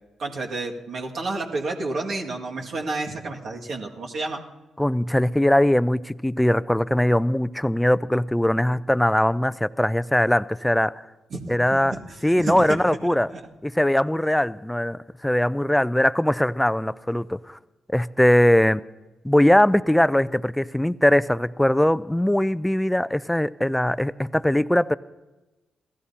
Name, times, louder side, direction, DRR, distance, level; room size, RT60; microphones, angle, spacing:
voice 1, 0.2-4.4 11.3-12.8 13.3-13.4, right 3 dB, 65° right, 0 dB, 2.1 m, -30 dB
voice 2, 4.8-11.0 11.5-12.0 12.2-13.3 13.6-17.6 17.9-18.8 19.2-25.0, left 1 dB, 5° left, 16 dB, 0.5 m, -21 dB
27.5 x 16.5 x 2.9 m, 1.1 s
hypercardioid pair, 45°, 0 cm